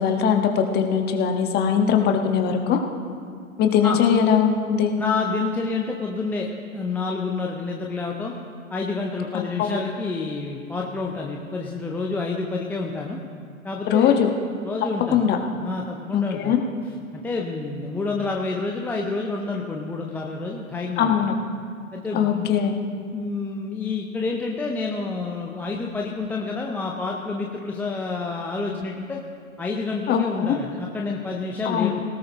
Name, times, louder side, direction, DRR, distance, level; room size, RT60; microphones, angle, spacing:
voice 1, 0.0-2.8 3.6-4.9 9.3-9.8 13.9-14.3 15.1-15.4 16.1-16.6 21.0-21.3 22.1-22.8 30.1-30.6 31.6-31.9, left 8 dB, 25° left, 4 dB, 1.4 m, -21 dB
voice 2, 5.0-8.3 8.7-13.2 13.6-14.2 14.6-15.2 15.6-16.5 17.1-21.1 21.9-22.5 23.1-29.2 29.6-32.0, left 3 dB, 5° left, 0 dB, 0.5 m, -28 dB
18.5 x 17.5 x 3.0 m, 2.2 s
figure-of-eight pair, 115°, 41 cm